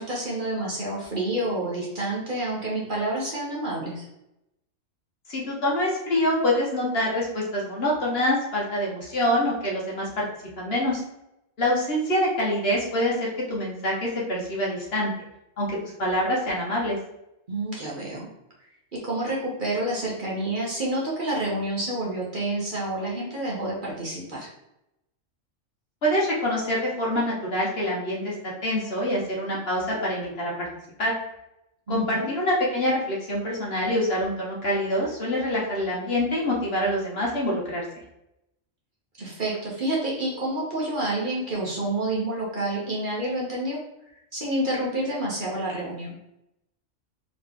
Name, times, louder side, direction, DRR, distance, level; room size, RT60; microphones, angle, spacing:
voice 1, 0.0-4.1 17.5-18.3 18.9-24.5 31.9-32.3 39.2-43.8 44.3-46.2, right 1 dB, 40° right, -4 dB, 1.2 m, -28 dB
voice 2, 5.3-10.3 10.6-11.0 11.6-15.1 15.6-17.0 26.0-28.3 28.6-30.7 31.0-31.1 31.9-37.8, left 1 dB, 50° left, -3 dB, 1.3 m, -25 dB
3.8 x 3.2 x 3.5 m, 0.85 s
omnidirectional pair, 1.3 m